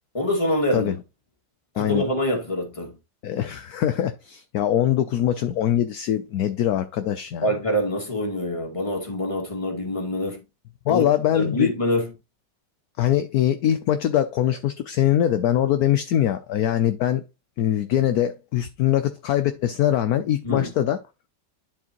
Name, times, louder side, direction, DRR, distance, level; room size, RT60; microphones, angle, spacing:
voice 1, 0.1-0.9 1.7-2.9 7.4-10.4 10.9-11.1 11.3-12.1 20.4-20.7, left 1 dB, 15° left, 2.2 m, -25 dB
voice 2, 3.2-7.5 10.9-11.7 13.0-17.2 17.6-21.0, left 11 dB, 65° left, 1.0 m, -22 dB
11.0 x 4.8 x 3.0 m
omnidirectional pair, 1.9 m